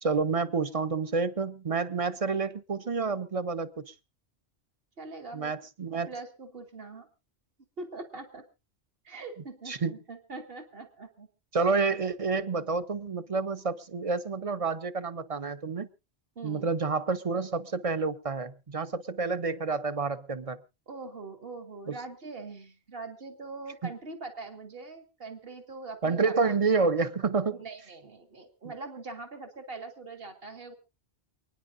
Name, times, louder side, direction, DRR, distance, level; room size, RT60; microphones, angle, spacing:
voice 1, 0.0-3.9 5.3-6.1 9.7-9.9 11.5-15.9 16.4-20.6 21.9-22.0 23.8-23.9 26.0-27.6, right 4 dB, 35° right, 0.7 m, -29 dB
voice 2, 5.0-5.5 5.9-7.1 7.8-8.4 9.0-11.3 16.4-16.7 20.9-26.5 27.6-30.7, right 3 dB, 55° right, 2.1 m, -42 dB
28.5 x 9.9 x 2.6 m
omnidirectional pair, 1.2 m